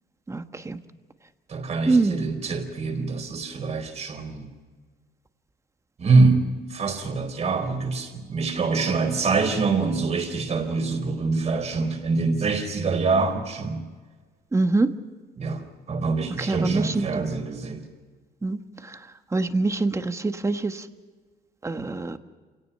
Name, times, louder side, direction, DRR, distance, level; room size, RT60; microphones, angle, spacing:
voice 1, 0.3-0.8 1.9-2.2 14.5-14.9 16.4-17.2 18.4-18.6 18.9-19.0 19.3-20.8 21.6-22.2, right 3 dB, 15° right, 9 dB, 1.3 m, -24 dB
voice 2, 1.5-4.5 6.0-13.8 15.4-15.6 15.9-17.8, right 4 dB, 40° right, 5 dB, 4.5 m, -25 dB
28.0 x 17.5 x 5.6 m, 1.4 s
cardioid pair, 110°, 17 cm